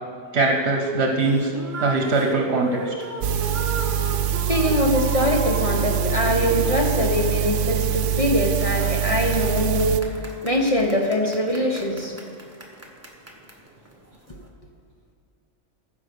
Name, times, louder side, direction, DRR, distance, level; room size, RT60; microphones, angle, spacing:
voice 1, 0.3-1.5 1.8-3.1, right 3 dB, 65° right, 3 dB, 1.2 m, -22 dB
sound 1, 1.0-14.5, right 1 dB, 15° right, 1.3 m, -36 dB
sound 2, 3.2-10.0, right 9 dB, 80° right, 0.9 m, -24 dB
voice 2, 4.5-10.0 10.4-12.1, left 1 dB, 30° left, 0 dB, 1.0 m, -22 dB
15.0 x 5.3 x 6.7 m, 2.2 s
omnidirectional pair, 1.2 m